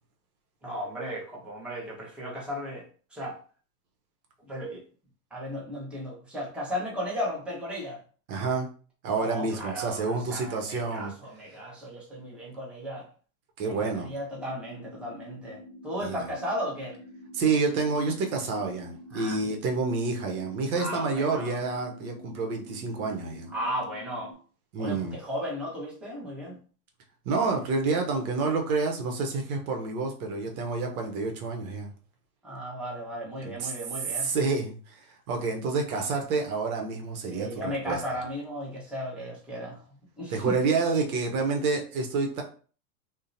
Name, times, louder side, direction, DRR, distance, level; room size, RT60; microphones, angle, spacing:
voice 1, 0.6-2.8 3.1-3.4 4.4-4.8 5.3-8.0 9.2-13.1 13.6-17.0 19.1-19.4 20.7-21.6 23.5-24.3 24.8-26.6 32.4-34.3 37.2-39.8 40.2-40.6, equal, ahead, -5 dB, 0.9 m, -35 dB
voice 2, 8.3-8.7 9.0-11.1 13.6-14.1 16.0-16.3 17.3-23.5 24.7-25.2 27.3-31.9 33.4-33.7 34.1-35.0 35.3-38.0 40.3-42.4, right 4 dB, 65° right, 2 dB, 0.8 m, -28 dB
sound 1, 14.3-24.3, left 1 dB, 30° left, 0.4 m, -47 dB
2.7 x 2.1 x 2.6 m, 0.40 s
hypercardioid pair, 115°, 46 cm